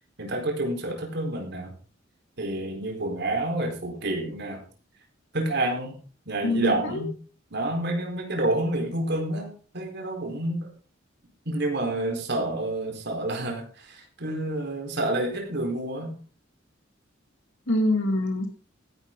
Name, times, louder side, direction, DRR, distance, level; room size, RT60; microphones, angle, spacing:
voice 1, 0.2-1.7 2.4-4.6 5.3-6.0 6.3-7.1 7.5-9.5 9.7-10.7 11.4-16.1, right 1 dB, 60° right, 2 dB, 4.5 m, -28 dB
voice 2, 6.4-7.0 17.7-18.5, left 1 dB, 70° left, 3 dB, 2.7 m, -25 dB
16.0 x 10.0 x 3.9 m, 0.38 s
head